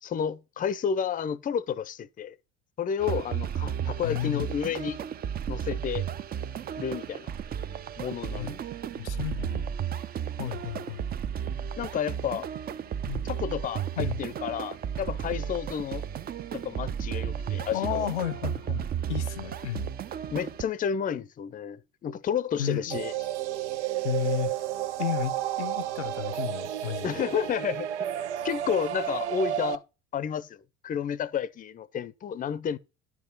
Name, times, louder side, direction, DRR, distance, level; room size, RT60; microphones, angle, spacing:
voice 1, 0.0-2.3 2.8-5.0 5.5-6.0 6.8-7.3 8.0-8.6 11.8-12.5 13.2-16.0 16.5-18.1 20.3-23.1 27.0-27.9 28.4-29.8 30.1-32.8, left 8 dB, 25° left, 0.6 m, -31 dB
sound 1, 3.0-20.6, right 9 dB, 25° right, 0.5 m, -33 dB
voice 2, 4.0-4.5 8.2-8.5 9.0-9.8 10.4-11.0 13.0-13.2 14.0-14.2 17.7-19.9 22.6-23.0 24.0-24.5 25.0-27.2, left 11 dB, 70° left, 0.7 m, -32 dB
sound 2, 22.9-29.7, right 12 dB, 75° right, 0.6 m, -31 dB
10.5 x 4.9 x 5.4 m
figure-of-eight pair, 60°, 35 cm